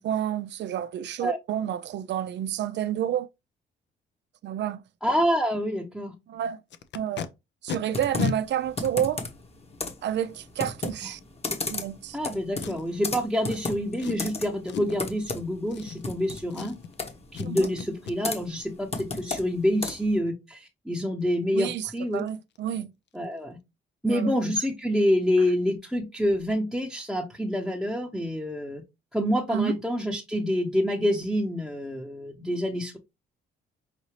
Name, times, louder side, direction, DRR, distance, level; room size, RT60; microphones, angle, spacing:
voice 1, 0.0-3.3 4.4-4.8 6.3-6.6 6.9-7.3 7.6-9.2 10.0-11.2 11.7-12.2 17.4-17.7 21.5-22.9 24.1-24.3 29.5-29.7, right 10 dB, 65° right, 0.4 m, -29 dB
voice 2, 5.0-6.1 12.1-16.8 17.3-22.3 23.1-23.6 24.0-28.8 29.1-33.0, equal, ahead, 0.9 m, -27 dB
Packing tape duct tape, 6.7-7.3 7.7-7.8 8.2-8.4 9.1-9.2 12.6-13.0 13.5-13.6 14.0-14.3 14.7-15.0 15.7-16.2 16.5-17.0 17.3-17.5 17.8-18.2 21.2-21.3 21.6-21.8 22.1-22.3 22.6-22.8 23.1-23.2, left 7 dB, 65° left, 0.6 m, -34 dB
Computer keyboard, 7.9-20.2, left 3 dB, 30° left, 1.1 m, -35 dB
5.8 x 2.6 x 3.1 m
cardioid pair, 90°, 20 cm